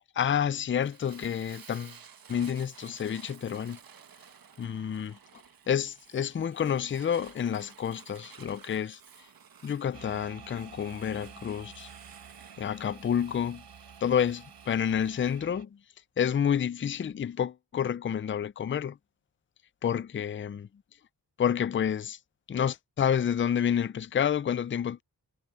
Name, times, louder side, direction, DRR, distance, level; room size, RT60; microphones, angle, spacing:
voice 1, 0.2-2.0 2.3-3.8 4.6-5.1 5.7-9.0 9.6-11.9 12.6-13.6 14.0-15.7 16.2-19.0 19.8-20.7 21.4-22.2 22.5-25.0, left 8 dB, 30° left, 0.4 m, -29 dB
Fire, 0.8-15.4, right 7 dB, 60° right, 1.2 m, -54 dB
sound 1, 9.9-15.6, right 7 dB, 85° right, 4.3 m, -50 dB
wide cardioid pair, 135°, 40 cm